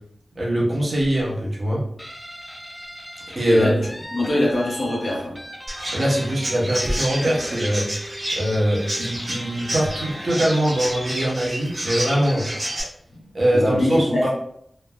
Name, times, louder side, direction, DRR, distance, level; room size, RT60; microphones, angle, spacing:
voice 1, 0.4-1.8 3.4-3.7 5.9-7.9 8.4-12.4 13.3-14.3, right 1 dB, 70° right, -4 dB, 0.9 m, -22 dB
Laughter, 1.0-1.5 3.8-4.8 5.2-5.3 6.8-8.0 9.5-10.5 11.6-12.9, equal, 25° right, 0.5 m, -36 dB
Guitar, 2.0-11.2, equal, 10° left, 0.7 m, -39 dB
voice 2, 3.4-3.8 4.1-5.3 13.1-13.2 13.5-14.3, left 1 dB, 75° left, -4 dB, 1.2 m, -23 dB
Chirp tweet, 5.7-12.8, right 1 dB, 50° right, 1.2 m, -30 dB
3.1 x 2.2 x 2.3 m, 0.69 s
wide cardioid pair, 55°, 0 cm